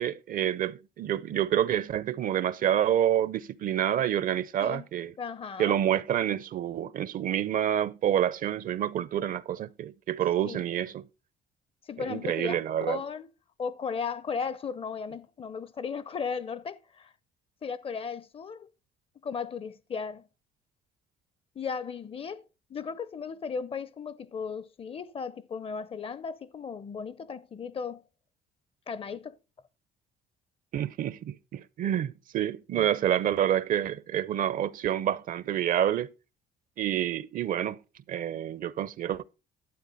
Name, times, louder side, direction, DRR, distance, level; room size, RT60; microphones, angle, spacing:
voice 1, 0.0-5.1 5.6-11.0 12.1-13.0 30.7-36.1 36.8-37.8 38.1-39.2, right 10 dB, 55° right, 0.6 m, -28 dB
voice 2, 5.2-5.8 10.5-10.6 11.9-12.6 12.9-13.3 13.6-17.1 17.6-18.7 19.2-20.2 21.6-28.0 28.9-29.4, left 6 dB, 35° left, 0.6 m, -36 dB
12.0 x 8.1 x 4.0 m
cardioid pair, 110°, 17 cm